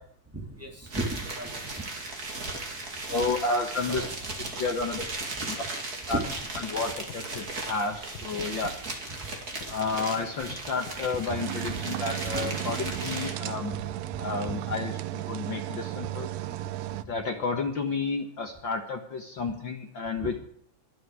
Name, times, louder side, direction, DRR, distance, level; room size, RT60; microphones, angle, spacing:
voice 1, 0.3-1.5 3.1-3.2 3.9-4.0 5.4-5.6 6.1-6.2 9.2-9.3 11.3-11.4 12.4-12.5 12.8-13.0 16.6-16.7 20.2-20.4, right 1 dB, 5° right, 0 dB, 2.4 m, -35 dB
sound 1, 0.9-13.5, right 2 dB, 30° right, 2.6 m, -37 dB
voice 2, 3.1-4.0 4.6-5.0 5.5-5.6 6.1-6.2 6.6-8.7 9.7-13.8 14.2-16.3 17.1-20.4, left 4 dB, 55° left, 4 dB, 1.4 m, -31 dB
sound 2, 6.2-6.7 7.1-7.4 7.9-8.8 9.3-9.7 10.5-11.3, left 8 dB, 70° left, 1.1 m, -44 dB
sound 3, 11.3-17.0, right 14 dB, 80° right, 1.5 m, -34 dB
23.0 x 8.7 x 4.7 m, 0.62 s
omnidirectional pair, 3.7 m